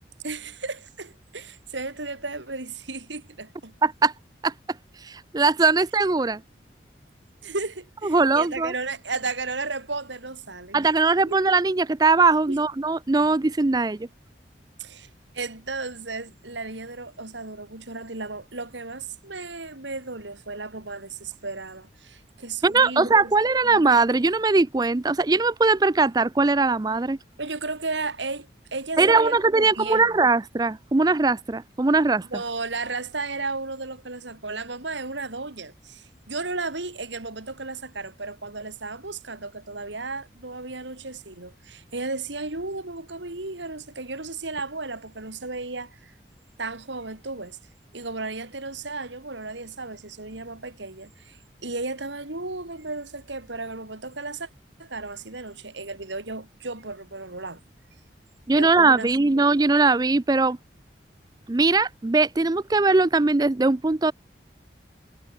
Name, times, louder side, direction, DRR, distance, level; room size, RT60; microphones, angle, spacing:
voice 1, 0.2-3.7 7.4-10.9 11.3-11.4 12.5-12.6 14.8-15.1 15.3-23.3 23.6-23.9 27.4-30.2 32.3-46.1 46.6-47.6 47.9-54.5 54.8-57.6 58.6-59.1 59.3-59.5, right 3 dB, 90° right, 3.6 m, -34 dB
voice 2, 3.8-4.1 4.4-4.5 5.0-6.4 8.0-8.7 10.7-14.1 22.6-27.2 29.0-32.3 58.5-60.6 61.5-64.1, right 3 dB, 20° right, 0.4 m, -20 dB
head